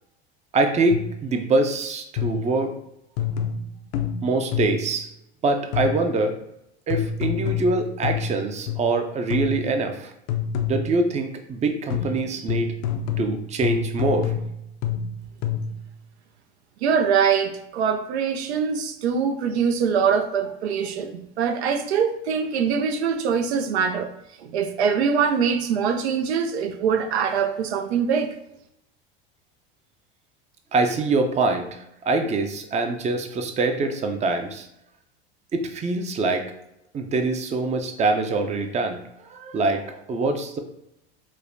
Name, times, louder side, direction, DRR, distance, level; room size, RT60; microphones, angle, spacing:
voice 1, 0.5-2.7 4.2-5.1 5.4-6.3 6.9-10.1 10.7-12.7 13.2-14.3 30.7-34.7 35.5-36.4 36.9-40.6, right 3 dB, 20° right, 6 dB, 0.5 m, -24 dB
sound 1, 0.9-1.3 2.2-2.6 3.2-5.0 5.7-6.2 6.9-9.0 9.3-9.8 10.3-11.1 11.9-15.9, left 7 dB, 55° left, 0.5 m, -28 dB
voice 2, 16.8-24.1 24.4-28.3, right 6 dB, 85° right, 7 dB, 0.5 m, -23 dB
5.2 x 2.1 x 2.5 m, 0.81 s
hypercardioid pair, 95°, 32 cm